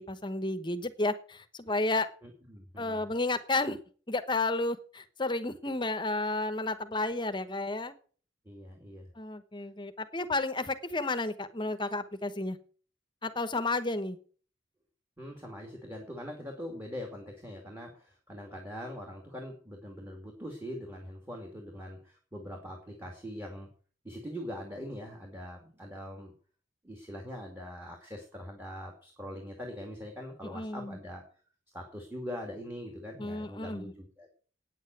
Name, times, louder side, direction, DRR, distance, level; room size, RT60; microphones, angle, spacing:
voice 1, 0.0-2.1 2.8-3.8 4.1-7.9 9.2-12.6 13.2-14.2 30.4-31.0 33.2-33.9, left 2 dB, 25° left, 10 dB, 1.1 m, -32 dB
voice 2, 2.2-3.0 8.5-9.1 15.2-23.7 24.0-26.3 26.8-31.2 31.7-34.3, equal, 10° right, 1 dB, 2.4 m, -42 dB
9.3 x 8.2 x 9.0 m, 0.43 s
head